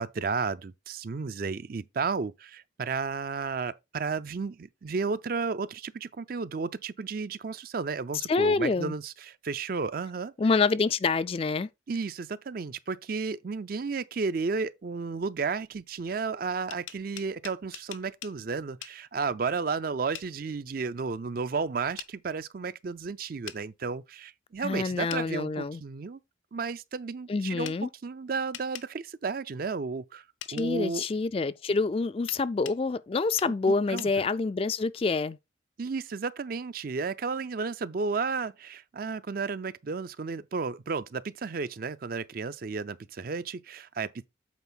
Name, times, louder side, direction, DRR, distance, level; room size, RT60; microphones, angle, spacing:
voice 1, 0.0-10.3 11.9-26.2 26.5-27.7 28.0-30.2 30.5-31.0 33.7-34.2 35.8-44.2, right 4 dB, 50° right, 0.4 m, -33 dB
voice 2, 8.3-9.0 10.4-11.7 24.6-25.8 27.3-27.9 30.5-35.4, left 4 dB, 30° left, 0.3 m, -27 dB
sound 1, 16.5-18.4 18.8-19.0 20.1-20.3 22.0-22.1 23.5-23.6 25.1-25.3 27.6-27.8 28.5-28.9 30.4-30.7 32.3-32.8 33.4-33.5 34.0-34.1, left 12 dB, 80° left, 0.6 m, -42 dB
8.2 x 4.5 x 4.0 m
head